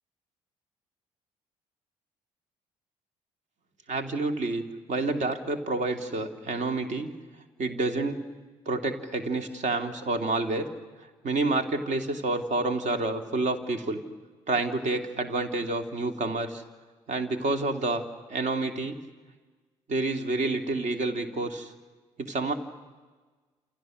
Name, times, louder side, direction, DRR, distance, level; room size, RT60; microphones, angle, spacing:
voice 1, 3.9-7.1 7.6-8.2 8.7-10.7 11.2-14.0 14.5-16.6 17.1-18.0 18.3-19.0 19.9-21.7 22.2-22.5, right 2 dB, 45° right, 7 dB, 2.9 m, -28 dB
28.5 x 28.5 x 6.5 m, 1.4 s
figure-of-eight pair, 50°, 17 cm